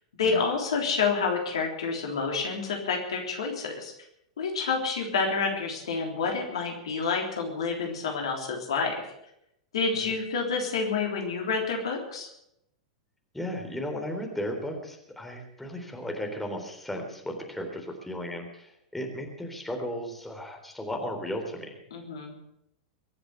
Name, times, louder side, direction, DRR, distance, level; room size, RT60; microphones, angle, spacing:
voice 1, 0.2-3.9 4.4-9.0 9.7-12.3 21.9-22.4, left 4 dB, 70° left, 2 dB, 3.5 m, -28 dB
voice 2, 13.3-21.8, equal, 5° left, 2 dB, 3.6 m, -35 dB
23.0 x 7.9 x 8.0 m, 0.78 s
figure-of-eight pair, 95°, 3 cm